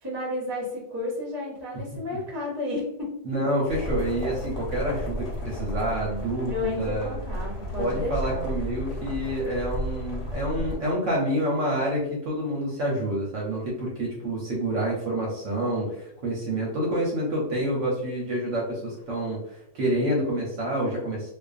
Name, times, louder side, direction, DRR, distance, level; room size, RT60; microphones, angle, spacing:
voice 1, 0.0-3.1 6.5-8.4, left 2 dB, 25° right, -4 dB, 0.6 m, -32 dB
voice 2, 3.2-7.2 7.8-21.3, right 1 dB, 60° right, -3 dB, 0.9 m, -28 dB
sound 1, 3.7-10.8, equal, 60° left, 1.1 m, -33 dB
2.4 x 2.4 x 2.4 m, 0.83 s
omnidirectional pair, 1.6 m